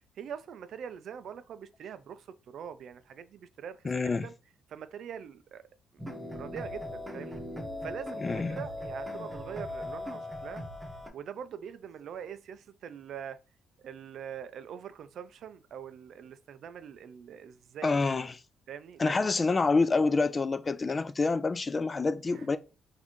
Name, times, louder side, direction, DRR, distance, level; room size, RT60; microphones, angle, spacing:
voice 1, 0.2-4.3 4.7-5.6 6.2-7.4 7.8-10.6 11.1-13.4 13.8-18.0 18.7-19.3 22.3-22.6, right 8 dB, 70° right, 0.4 m, -43 dB
voice 2, 3.8-4.3 8.2-8.6 17.8-18.3 19.0-22.6, left 3 dB, 30° left, 0.3 m, -27 dB
sound 1, 6.0-11.1, left 1 dB, 15° right, 0.9 m, -39 dB
4.0 x 2.6 x 3.0 m
cardioid pair, 90°, 0 cm